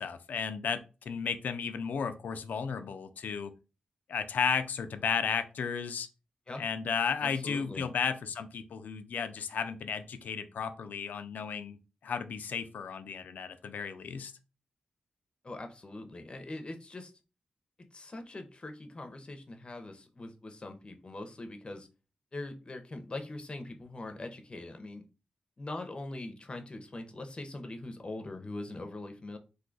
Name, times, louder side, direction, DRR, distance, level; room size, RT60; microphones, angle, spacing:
voice 1, 0.0-3.5 4.1-6.1 6.6-14.3, left 6 dB, 80° left, 10 dB, 0.4 m, -34 dB
voice 2, 7.2-7.9 15.4-17.1 17.9-21.9 22.3-25.0 25.6-29.4, left 2 dB, 35° left, 6 dB, 0.7 m, -42 dB
2.7 x 2.3 x 3.8 m, 0.31 s
cardioid pair, 65°, 3 cm